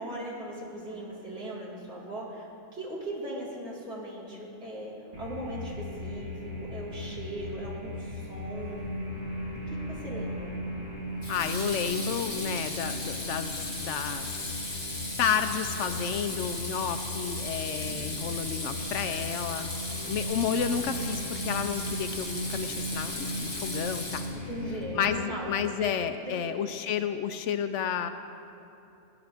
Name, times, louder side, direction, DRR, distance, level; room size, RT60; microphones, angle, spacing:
voice 1, 0.0-2.5 2.7-6.4 6.7-8.9 9.9-10.7 17.8-18.1 24.5-25.5 25.8-25.9 26.2-26.9, right 1 dB, 60° right, -7 dB, 3.0 m, -39 dB
sound 1, 5.1-25.1, left 1 dB, 30° right, 1.6 m, -37 dB
Water tap faucet / Sink (filling or washing), 9.6-9.9 11.2-24.6, left 1 dB, 20° left, 1.7 m, -37 dB
voice 2, 11.3-14.4 15.2-19.7 20.0-24.3 25.0-28.1, left 7 dB, 75° left, 9 dB, 0.9 m, -31 dB
18.0 x 10.5 x 3.5 m, 2.9 s
omnidirectional pair, 1.3 m